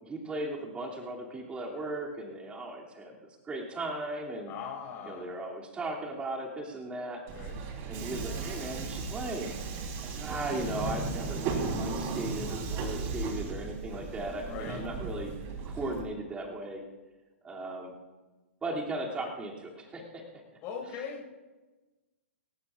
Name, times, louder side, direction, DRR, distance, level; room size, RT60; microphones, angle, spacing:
voice 1, 0.0-4.5 5.1-7.2 7.9-9.5 10.0-11.4 11.8-15.3 15.6-16.8 17.4-17.9 18.6-20.2, right 2 dB, 15° right, -2 dB, 2.8 m, -37 dB
voice 2, 4.4-5.3 7.3-7.6 14.5-14.9 20.6-21.4, left 6 dB, 35° left, -1 dB, 5.3 m, -40 dB
Subway metro underground, 7.3-16.0, right 4 dB, 35° right, 3.5 m, -35 dB
29.5 x 15.0 x 2.5 m, 1.2 s
figure-of-eight pair, 115°, 7 cm